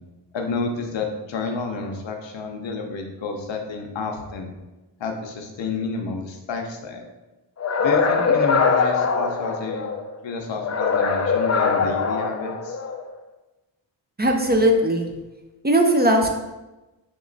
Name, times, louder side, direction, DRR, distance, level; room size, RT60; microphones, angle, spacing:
voice 1, 0.3-4.5 5.0-7.1 7.8-9.8 10.2-12.8, left 4 dB, 85° left, 3 dB, 0.7 m, -30 dB
sound 1, 7.6-10.0 10.6-13.0, left 5 dB, 40° left, 0.4 m, -22 dB
voice 2, 14.2-15.1 15.6-16.3, right 1 dB, 25° right, 3 dB, 0.5 m, -18 dB
3.6 x 3.1 x 3.8 m, 1.1 s
cardioid pair, 75°, 44 cm